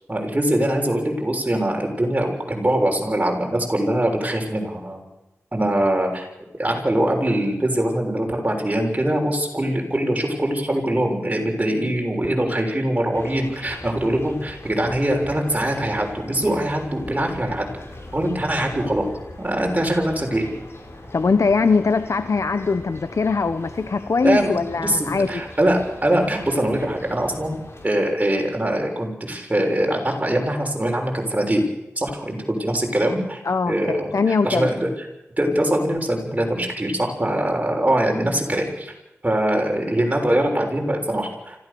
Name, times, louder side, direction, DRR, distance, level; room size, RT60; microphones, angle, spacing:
voice 1, 0.1-5.0 5.5-6.3 6.6-17.7 18.1-19.1 19.4-20.5 24.2-31.7 32.0-34.9 35.4-38.9 39.2-41.6, right 1 dB, 30° right, 1 dB, 6.8 m, -22 dB
sound 1, 13.1-27.9, left 1 dB, 55° left, 6.2 m, -40 dB
voice 2, 21.1-25.4 33.4-34.7, left 4 dB, 80° left, 10 dB, 1.0 m, -21 dB
25.5 x 16.0 x 7.1 m, 0.93 s
wide cardioid pair, 65°, 5 cm